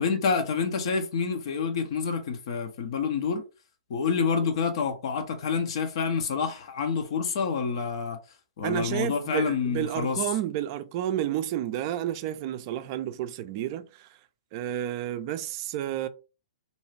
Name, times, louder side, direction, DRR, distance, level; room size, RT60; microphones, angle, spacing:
voice 1, 0.0-3.4 3.9-8.2 8.6-10.2, left 5 dB, 55° left, 0.6 m, -28 dB
voice 2, 8.6-14.1 14.5-16.1, right 12 dB, 40° right, 0.4 m, -31 dB
2.6 x 2.3 x 3.2 m
hypercardioid pair, 120°, 3 cm